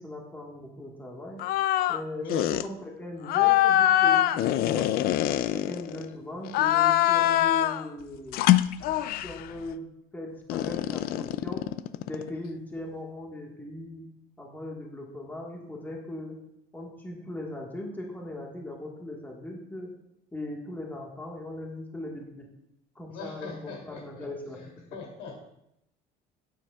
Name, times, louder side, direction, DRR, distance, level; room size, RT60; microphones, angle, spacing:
voice 1, 0.0-1.4 1.9-4.9 5.5-8.4 9.0-11.7 12.1-16.4 16.7-19.9 20.3-22.5 22.9-24.6, left 1 dB, 10° left, -1 dB, 1.6 m, -39 dB
sound 1, 1.4-2.0 2.3-2.7 3.3-6.0 6.5-7.8 8.3-9.4 10.5-12.3, left 13 dB, 60° left, 0.4 m, -23 dB
voice 2, 23.1-25.3, left 3 dB, 80° left, -1 dB, 2.9 m, -42 dB
11.5 x 9.0 x 2.4 m, 0.80 s
cardioid pair, 125°, 18 cm